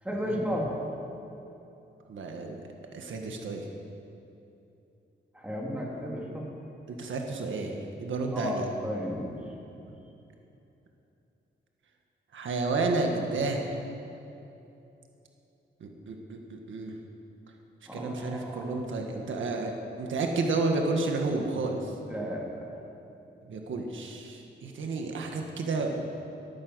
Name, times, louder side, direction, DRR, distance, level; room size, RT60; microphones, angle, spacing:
voice 1, 0.0-0.7 5.3-6.5 8.3-9.4 17.9-18.8 22.1-22.8, equal, 5° right, -3 dB, 2.7 m, -34 dB
voice 2, 2.1-2.6 2.9-3.6 6.9-7.7 8.0-8.7 12.3-13.7 15.8-16.9 17.9-21.8 23.5-26.0, right 3 dB, 90° right, 2 dB, 1.6 m, -31 dB
13.5 x 12.0 x 6.3 m, 2.9 s
wide cardioid pair, 140°, 19 cm